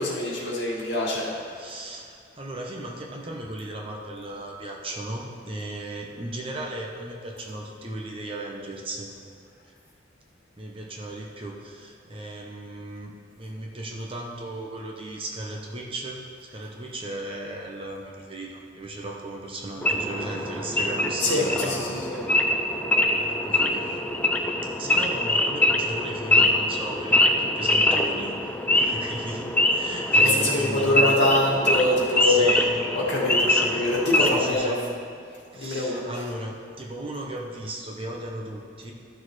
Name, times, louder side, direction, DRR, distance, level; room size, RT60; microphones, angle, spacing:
voice 1, 0.0-1.3 21.2-22.2 30.2-32.5 32.9-34.7 35.5-36.0, left 2 dB, 65° left, -5 dB, 2.1 m, -24 dB
voice 2, 1.5-9.1 10.6-22.6 23.1-24.0 24.6-31.2 32.0-33.1 33.5-35.0 35.5-38.9, right 1 dB, 30° right, -1 dB, 0.9 m, -36 dB
Wild animals / Idling, 19.8-34.5, left 1 dB, 10° left, 0.4 m, -24 dB
13.5 x 6.5 x 3.2 m, 2.3 s
head